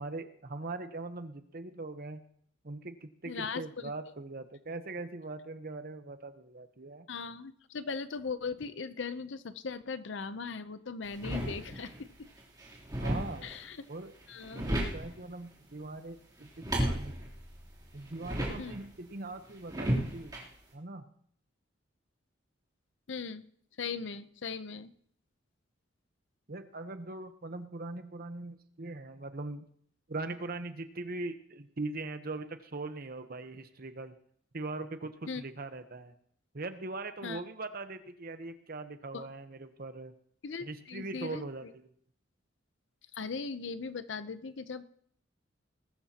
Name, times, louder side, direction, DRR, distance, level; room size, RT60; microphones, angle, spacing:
voice 1, 0.0-2.2 2.6-7.1 13.0-13.5 13.9-14.1 14.5-17.3 17.9-20.3 20.7-21.1 26.5-29.7 30.1-34.1 34.5-36.1 36.5-40.1 40.6-41.9, right 2 dB, 50° right, 9 dB, 1.0 m, -41 dB
voice 2, 3.2-3.6 7.1-12.3 13.4-13.8 14.3-14.7 18.6-18.7 23.1-23.4 23.8-24.9 35.3-35.4 37.2-37.4 39.1-39.3 40.4-41.7 43.1-44.8, left 5 dB, 70° left, 12 dB, 0.7 m, -39 dB
sound 1, 11.0-12.0 12.4-13.7 14.2-15.2 16.4-18.9 19.7-20.4, right 1 dB, 20° right, 3.3 m, -34 dB
20.0 x 13.0 x 2.9 m, 0.64 s
head